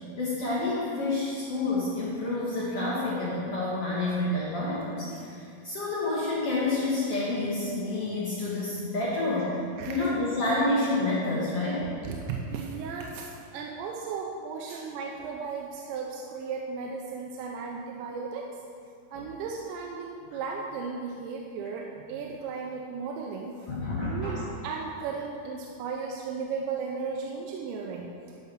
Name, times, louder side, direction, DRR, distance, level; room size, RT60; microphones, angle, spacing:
voice 1, 0.2-9.5 9.9-11.8 14.7-14.8 19.1-19.2 23.7-24.4, left 2 dB, 70° left, -8 dB, 1.4 m, -29 dB
voice 2, 9.8-10.1 12.0-18.5 19.1-23.7 24.0-28.1, right 5 dB, 90° right, 0 dB, 3.0 m, -35 dB
11.0 x 5.7 x 6.2 m, 2.4 s
omnidirectional pair, 5.0 m